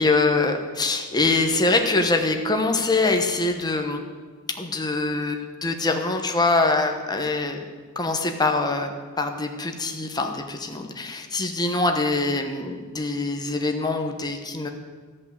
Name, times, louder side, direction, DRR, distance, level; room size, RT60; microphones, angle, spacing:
voice 1, 0.0-4.0 4.5-7.6 8.0-14.7, left 3 dB, 20° left, 4 dB, 1.0 m, -24 dB
13.5 x 5.4 x 8.0 m, 1.5 s
head